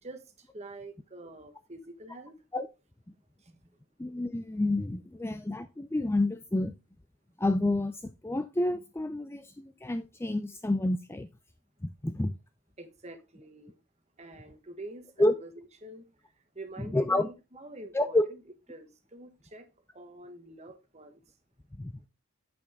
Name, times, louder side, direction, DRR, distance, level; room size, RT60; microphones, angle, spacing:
voice 1, 0.0-2.3 3.4-3.5 12.8-13.8 14.2-16.1 16.5-18.4 18.7-19.7 19.9-21.2, right 2 dB, 30° right, 1.2 m, -46 dB
voice 2, 4.0-6.7 7.4-11.3 11.8-12.3 15.2-15.3 16.8-17.3 17.9-18.2 21.8-21.9, left 1 dB, 10° left, 0.3 m, -29 dB
8.5 x 6.3 x 3.6 m
head